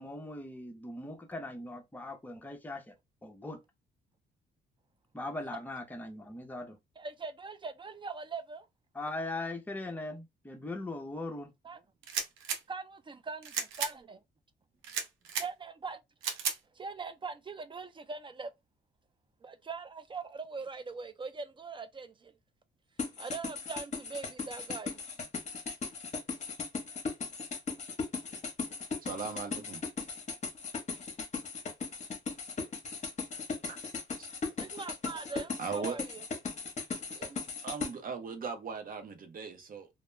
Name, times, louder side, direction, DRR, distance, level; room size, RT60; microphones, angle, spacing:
voice 1, 0.0-2.9 3.2-3.6 5.1-6.8 8.9-11.5, left 2 dB, 10° left, 0.7 m, -40 dB
voice 2, 7.0-8.7 11.6-11.8 12.7-14.2 15.4-16.0 16.7-18.5 19.4-22.3 23.2-25.0 34.6-36.2 37.2-37.4, right 4 dB, 25° right, 0.4 m, -41 dB
sound 1, 12.0-12.6 13.4-13.9 14.8-15.5 16.2-16.6, right 7 dB, 90° right, 0.6 m, -34 dB
sound 2, 23.0-37.9, left 5 dB, 35° left, 0.9 m, -37 dB
voice 3, 29.0-29.8 33.7-33.8 34.2-34.3 35.6-36.0 37.6-39.9, right 5 dB, 45° right, 0.7 m, -38 dB
2.2 x 2.1 x 3.1 m
cardioid pair, 90°, 20 cm